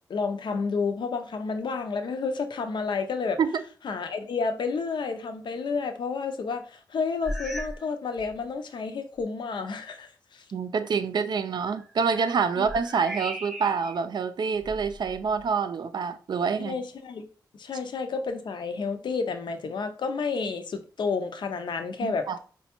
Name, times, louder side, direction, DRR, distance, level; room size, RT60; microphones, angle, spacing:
voice 1, 0.1-3.4 3.8-10.4 12.6-12.7 16.6-17.2 17.6-22.3, left 4 dB, 75° left, 0.5 m, -30 dB
sound 1, 7.2-7.9 8.2-8.5 9.2-9.3 11.7-14.0 14.5-15.6, equal, ahead, 0.5 m, -38 dB
voice 2, 10.5-16.8 22.0-22.4, right 5 dB, 65° right, 0.4 m, -27 dB
4.1 x 2.2 x 2.9 m
wide cardioid pair, 80°, 8 cm